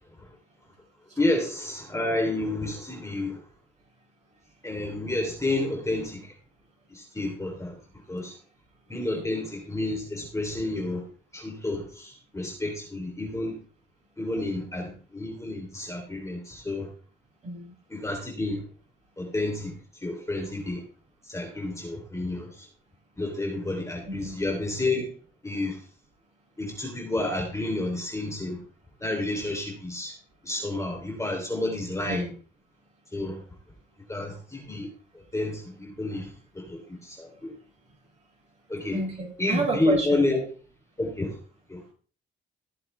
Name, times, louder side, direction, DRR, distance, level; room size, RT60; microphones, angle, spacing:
voice 1, 1.2-3.4 4.6-6.3 6.9-7.8 8.1-8.4 8.9-11.0 11.3-13.6 14.2-16.9 17.9-18.6 19.2-20.8 21.2-22.7 23.2-25.1 25.4-25.8 26.6-28.6 29.0-30.1 30.4-32.3 33.1-33.4 34.1-34.9 35.1-37.5 38.7-39.0 39.4-40.4 41.0-41.4 41.7-41.8, left 2 dB, 15° left, 1 dB, 3.5 m, -30 dB
voice 2, 17.4-17.7 24.1-24.4 32.0-32.3 38.9-40.2, right 3 dB, 35° right, -2 dB, 6.9 m, -30 dB
15.5 x 7.6 x 3.4 m, 0.40 s
cardioid pair, 90°, 20 cm